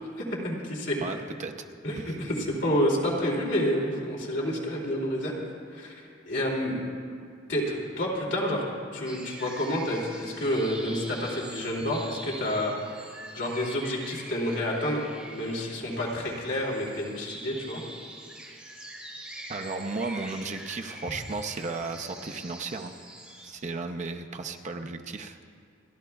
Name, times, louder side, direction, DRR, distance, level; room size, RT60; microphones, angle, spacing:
voice 1, 0.2-1.2 1.8-5.3 5.7-6.8 7.5-8.6 8.9-12.7 13.3-17.8, equal, 65° left, -3 dB, 2.7 m, -29 dB
voice 2, 1.0-1.5 1.9-2.1 19.5-22.9 23.4-25.4, right 3 dB, 40° right, 5 dB, 0.6 m, -34 dB
sound 1, 9.0-23.5, right 1 dB, 5° right, 2.3 m, -44 dB
29.5 x 11.5 x 2.3 m, 2.3 s
head